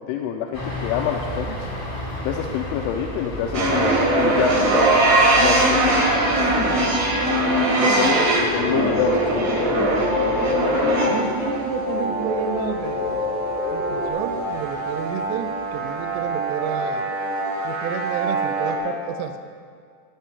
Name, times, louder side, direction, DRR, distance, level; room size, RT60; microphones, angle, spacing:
voice 1, 0.0-1.7 2.2-6.5 7.7-9.9, left 8 dB, 85° left, 1 dB, 3.1 m, -27 dB
sound 1, 0.5-15.8 16.2-16.3, left 1 dB, 30° left, 0.9 m, -35 dB
sound 2, 3.5-18.7, right 2 dB, 50° right, 1.3 m, -22 dB
voice 2, 7.4-8.3 10.4-10.6 11.0-13.4 13.7-17.1 17.6-19.4, right 9 dB, 85° right, 6 dB, 2.5 m, -31 dB
sound 3, 8.1-14.1, left 3 dB, 65° left, 1.2 m, -27 dB
15.0 x 5.5 x 9.3 m, 2.1 s
omnidirectional pair, 5.5 m